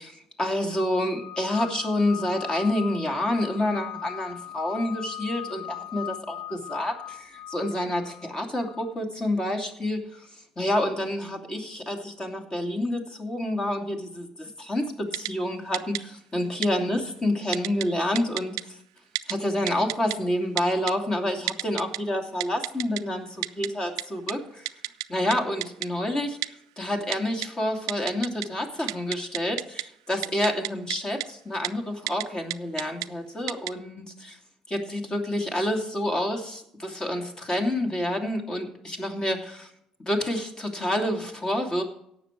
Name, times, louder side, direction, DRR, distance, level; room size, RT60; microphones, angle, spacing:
voice 1, 0.0-10.3 10.6-18.8 19.3-24.6 25.1-34.4 34.7-39.7 40.1-41.8, left 1 dB, 30° left, 4 dB, 2.7 m, -28 dB
sound 1, 1.2-8.9, left 12 dB, 65° left, 0.6 m, -39 dB
Typing, 15.1-15.3 15.7-16.0 16.6-16.7 17.5-17.9 18.2-18.6 19.2-19.3 19.7-20.2 20.6-20.9 21.5-22.0 22.4-23.0 23.4-23.7 24.0-24.1 24.3-24.4 24.7-25.1 25.3-25.4 25.6-25.9 26.4-26.5 27.1-27.5 27.9-28.5 28.8-29.8 30.2-31.0 31.2-31.3 31.6-31.7 32.1-32.2 32.5-33.1 33.5-33.7, right 19 dB, 85° right, 0.3 m, -30 dB
16.5 x 6.5 x 4.6 m, 0.75 s
hypercardioid pair, 55°, 3 cm